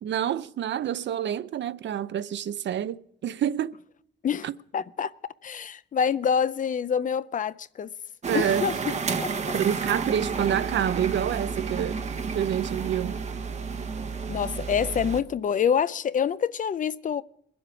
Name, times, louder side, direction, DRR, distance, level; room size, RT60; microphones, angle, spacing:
voice 1, 0.0-3.7 4.4-4.5 8.3-8.7 9.5-12.0 12.3-13.2, right 10 dB, 75° right, 0.6 m, -28 dB
voice 2, 4.7-5.1 5.4-7.9 8.3-8.7 9.2-9.6 14.3-17.2, left 7 dB, 45° left, 0.4 m, -26 dB
sound 1, 8.2-15.2, right 5 dB, 35° right, 0.8 m, -31 dB
22.5 x 7.8 x 4.9 m
wide cardioid pair, 160°, 19 cm